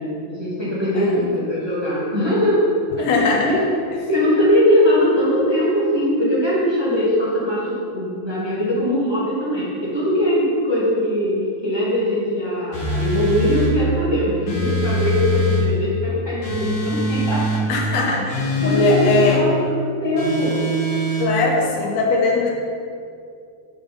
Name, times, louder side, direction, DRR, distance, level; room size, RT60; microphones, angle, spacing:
voice 1, 0.0-2.6 2.9-3.6 4.1-17.9 18.6-20.6, equal, 15° right, -10 dB, 0.9 m, -21 dB
voice 2, 0.9-1.3 3.0-3.5 17.7-19.4 21.2-22.5, left 3 dB, 85° left, -2 dB, 1.5 m, -20 dB
sound 1, 12.7-13.7 14.5-15.7 16.4-17.6 18.3-19.4 20.2-21.3, left 1 dB, 45° left, 2.7 m, -22 dB
8.0 x 5.6 x 5.5 m, 2.4 s
omnidirectional pair, 4.3 m